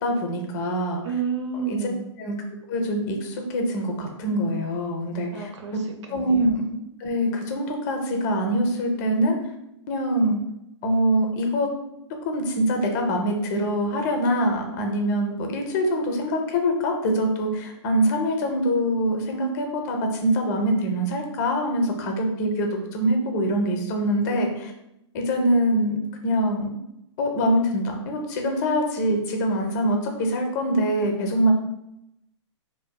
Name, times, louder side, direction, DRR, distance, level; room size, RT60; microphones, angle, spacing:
voice 1, 0.0-1.0 1.7-1.9 2.2-2.3 2.7-5.8 6.1-6.7 7.0-9.4 9.9-10.4 10.8-11.7 12.2-24.7 25.1-26.7 27.2-31.5, equal, 35° left, 3 dB, 0.5 m, -24 dB
voice 2, 1.0-2.1 5.3-6.5, right 6 dB, 70° right, 3 dB, 0.6 m, -31 dB
2.6 x 2.5 x 2.2 m, 0.83 s
hypercardioid pair, 140°, 16 cm